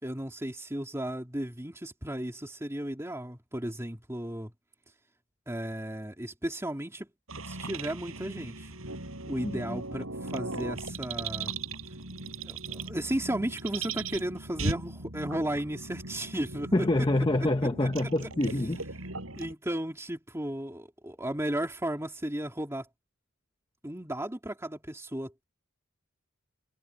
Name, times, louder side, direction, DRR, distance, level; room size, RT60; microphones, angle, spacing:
voice 1, 0.0-4.5 5.5-7.1 7.4-8.7 9.3-11.6 12.4-16.7 17.8-18.1 19.4-22.9 23.8-25.4, right 1 dB, 15° right, 3.0 m, -34 dB
sound 1, 7.3-19.5, right 3 dB, 85° right, 7.6 m, -38 dB
voice 2, 9.4-9.8 16.7-18.8, left 1 dB, 20° left, 0.8 m, -26 dB
head